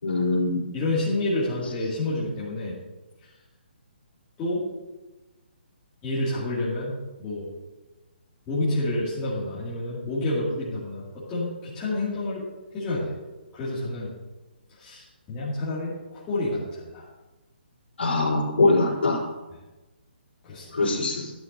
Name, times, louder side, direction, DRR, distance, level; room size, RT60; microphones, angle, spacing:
voice 1, 0.0-0.6 18.0-19.2 20.7-21.3, left 2 dB, 80° left, -7 dB, 3.9 m, -22 dB
voice 2, 0.7-2.7 4.4-4.7 6.0-7.5 8.5-12.4 12.7-13.2 13.5-14.1 14.7-17.0 20.4-20.8, left 2 dB, 20° left, -10 dB, 2.4 m, -29 dB
12.5 x 9.9 x 2.7 m, 1.1 s
hypercardioid pair, 155°, 6 cm